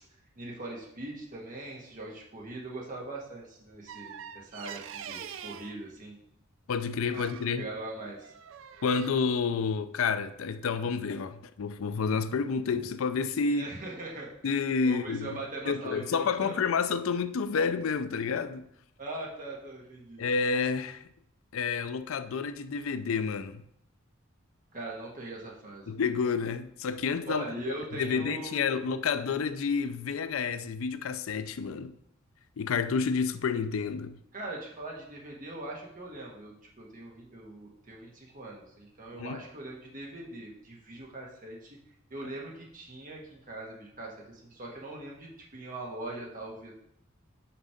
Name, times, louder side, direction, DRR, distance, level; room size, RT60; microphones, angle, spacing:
voice 1, 0.3-6.2 7.1-7.2 7.6-8.3 13.5-14.6 14.8-16.7 19.0-20.2 24.7-25.9 27.3-29.0 34.3-41.8 42.1-46.7, right 2 dB, 40° right, 1.7 m, -41 dB
sound 1, 3.9-5.8 7.1-7.5 8.2-9.1, right 8 dB, 65° right, 0.4 m, -43 dB
voice 2, 6.7-7.7 8.8-13.6 14.4-15.4 15.7-18.6 20.2-21.1 21.5-23.6 25.9-27.4 28.0-31.9 32.6-34.2 39.1-39.4, left 5 dB, 75° left, 0.4 m, -29 dB
5.9 x 5.2 x 5.0 m
head